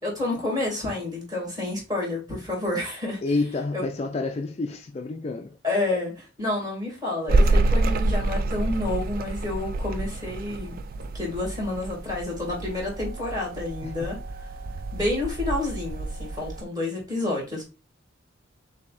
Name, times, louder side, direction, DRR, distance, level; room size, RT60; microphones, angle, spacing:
voice 1, 0.0-3.3 3.7-3.8 5.6-10.8 11.1-14.5 14.9-17.6, left 2 dB, 20° right, 2.5 m, -29 dB
voice 2, 3.2-5.6 13.8-13.9, left 3 dB, 35° left, 0.4 m, -29 dB
sound 1, 7.3-16.6, right 2 dB, 50° right, 0.3 m, -27 dB
6.5 x 2.7 x 2.5 m
head